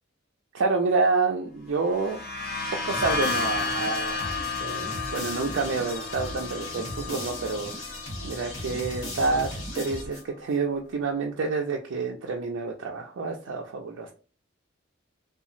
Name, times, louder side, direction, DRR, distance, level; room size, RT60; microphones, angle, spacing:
voice 1, 0.5-2.2 2.8-14.1, right 4 dB, 75° right, 0 dB, 0.4 m, -28 dB
sound 1, 1.8-9.4, left 4 dB, 45° left, 0.7 m, -33 dB
sound 2, 2.9-10.5, left 1 dB, 70° left, 1.3 m, -37 dB
2.8 x 2.4 x 2.5 m, 0.37 s
head